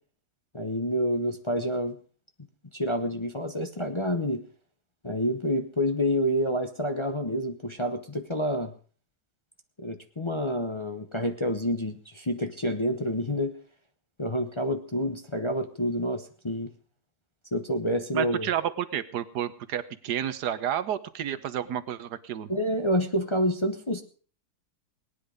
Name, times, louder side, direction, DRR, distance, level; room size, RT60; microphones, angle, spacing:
voice 1, 0.5-2.0 2.7-4.4 5.0-8.7 9.8-13.6 14.2-16.7 17.5-18.5 22.5-24.0, equal, 25° left, 6 dB, 0.8 m, -28 dB
voice 2, 18.1-22.5, right 10 dB, 80° right, 13 dB, 1.5 m, -30 dB
18.5 x 10.5 x 5.1 m, 0.42 s
omnidirectional pair, 1.7 m